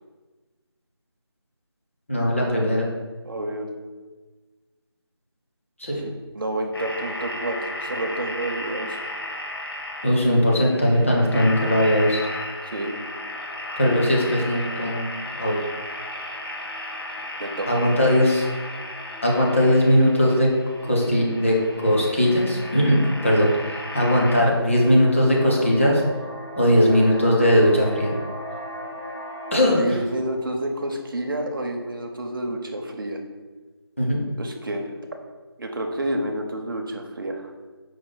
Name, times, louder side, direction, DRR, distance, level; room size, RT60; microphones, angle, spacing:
voice 1, 2.1-2.9 5.8-6.0 10.0-12.2 13.8-15.1 15.4-15.6 17.7-18.4 19.2-20.5 20.8-23.5 23.9-26.0 26.6-28.1 29.5-29.8 34.0-34.2, equal, 30° left, -3 dB, 0.6 m, -19 dB
voice 2, 3.2-3.7 5.9-9.1 12.7-13.0 17.4-18.3 29.8-33.2 34.4-34.9 35.6-37.5, right 1 dB, 50° right, 3 dB, 0.6 m, -29 dB
sound 1, 6.7-24.4, left 1 dB, 60° left, 0.8 m, -35 dB
sound 2, 13.5-29.5, equal, 80° left, 1.4 m, -41 dB
4.8 x 2.0 x 3.9 m, 1.3 s
figure-of-eight pair, 175°, 14 cm